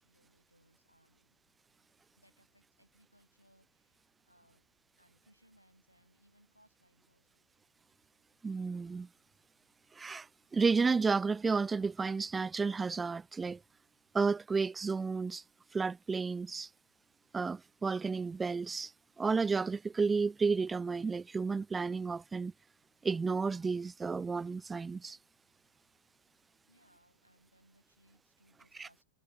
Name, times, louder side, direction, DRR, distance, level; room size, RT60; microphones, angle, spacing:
voice 1, 0.0-1.4 2.2-4.0 4.2-4.7 5.0-7.5 26.7-29.0, equal, 90° right, 6.0 m, -68 dB
voice 2, 8.4-9.1 10.0-10.3 10.5-13.6 14.1-15.4 15.7-16.7 17.3-18.9 19.2-22.5 23.0-25.2 28.8-28.9, right 4 dB, 15° right, 0.4 m, -32 dB
figure-of-eight pair, 90°, 0 cm